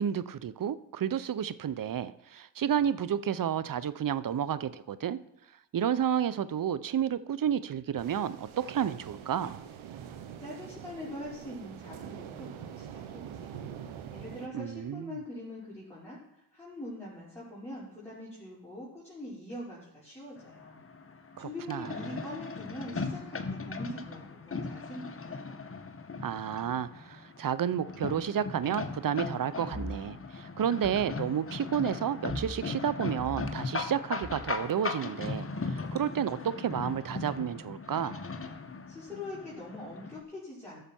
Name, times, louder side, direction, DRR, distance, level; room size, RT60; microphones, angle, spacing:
voice 1, 0.0-5.2 5.7-9.6 14.5-15.2 21.4-21.9 26.2-38.3, right 9 dB, 45° right, 16 dB, 0.7 m, -31 dB
sound 1, 8.0-14.5, right 9 dB, 75° right, 1.1 m, -44 dB
voice 2, 10.4-13.6 14.1-20.8 21.1-25.4 38.9-40.8, left 1 dB, 5° left, -9 dB, 4.6 m, -43 dB
sound 2, 20.4-40.2, left 4 dB, 25° left, 1.2 m, -38 dB
sound 3, 29.7-29.9 30.8-31.1 32.3-32.6 33.2-33.5 34.2-34.5, left 1 dB, 20° right, 2.3 m, -40 dB
13.0 x 6.8 x 4.4 m, 0.84 s
supercardioid pair, 50°, 49 cm